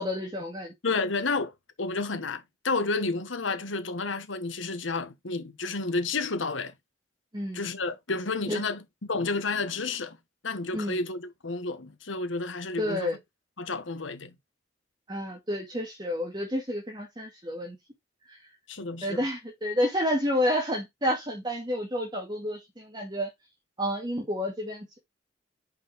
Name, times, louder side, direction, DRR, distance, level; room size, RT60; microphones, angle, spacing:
voice 1, 0.0-0.7 7.3-7.6 8.5-8.6 10.7-11.0 12.8-13.2 15.1-17.8 19.0-23.3 23.8-25.0, equal, 25° right, 2.1 m, -30 dB
voice 2, 0.8-1.5 1.8-6.7 7.5-10.2 10.4-13.1 13.6-14.3 18.7-19.3, left 3 dB, 90° left, 1.3 m, -31 dB
5.6 x 5.3 x 5.0 m
head